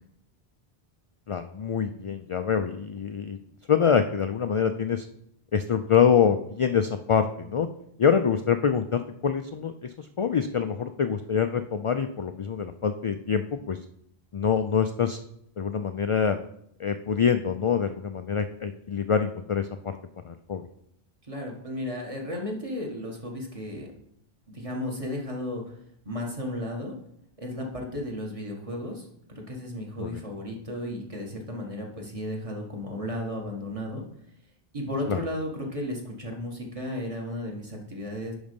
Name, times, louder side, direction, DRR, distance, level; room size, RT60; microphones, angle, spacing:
voice 1, 1.3-3.4 3.7-5.1 5.5-7.7 8.0-13.8 14.3-15.2 15.6-16.4 16.8-20.0 20.3-20.7 30.0-30.2 35.1-35.2, left 7 dB, 60° left, 8 dB, 0.3 m, -25 dB
voice 2, 21.3-23.9 24.5-25.7 26.0-26.9 27.4-29.1 29.3-34.0 34.7-38.3, left 1 dB, 35° right, -1 dB, 1.6 m, -34 dB
10.5 x 4.0 x 5.2 m, 0.72 s
omnidirectional pair, 1.1 m